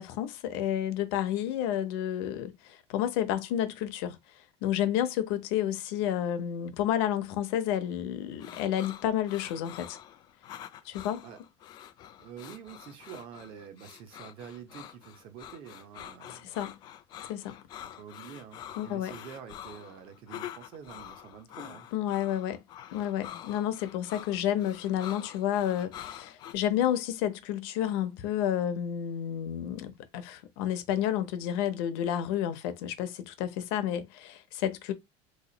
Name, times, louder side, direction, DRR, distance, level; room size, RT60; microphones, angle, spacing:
voice 1, 0.0-4.2 4.6-10.0 10.8-11.2 16.3-16.8 17.3-17.6 18.8-19.1 21.9-22.6 22.9-34.9, left 10 dB, 65° left, 0.7 m, -30 dB
Scared Male Heavy Breathing, 8.4-26.5, left 11 dB, 30° left, 0.4 m, -46 dB
voice 2, 12.2-16.5 17.8-21.9, right 8 dB, 40° right, 0.7 m, -47 dB
3.0 x 2.3 x 3.9 m
cardioid pair, 170°, 14 cm